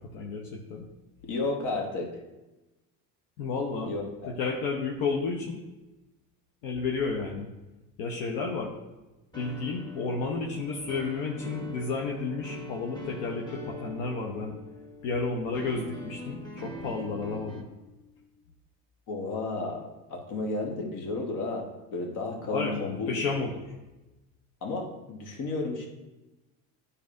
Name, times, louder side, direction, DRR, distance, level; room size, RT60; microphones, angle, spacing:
voice 1, 0.1-0.8 3.4-3.9 4.4-5.6 6.6-7.5 8.0-8.7 9.4-14.6 15.0-17.6 22.4-23.5, left 4 dB, 75° left, 0 dB, 0.9 m, -31 dB
voice 2, 1.2-2.2 3.8-4.4 19.1-23.3 24.6-25.9, left 3 dB, 55° left, 2 dB, 1.4 m, -33 dB
sound 1, 9.3-17.6, left 1 dB, 10° left, 1.5 m, -43 dB
9.7 x 4.1 x 2.6 m, 1.0 s
supercardioid pair, 95°, 36 cm